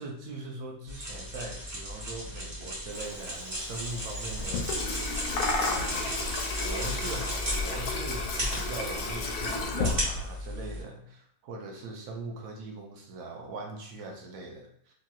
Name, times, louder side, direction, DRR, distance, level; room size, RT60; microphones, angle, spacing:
voice 1, 0.0-4.8 5.6-6.2 6.6-14.9, right 2 dB, 70° right, 1 dB, 0.9 m, -41 dB
sound 1, 0.9-10.8, equal, 45° right, 1.4 m, -35 dB
Bird vocalization bird call bird song, 2.9-7.9, left 2 dB, 65° left, 0.7 m, -38 dB
Water tap faucet / Sink (filling or washing), 4.3-10.6, left 3 dB, 85° left, 1.1 m, -33 dB
3.0 x 2.9 x 2.2 m, 0.68 s
omnidirectional pair, 1.6 m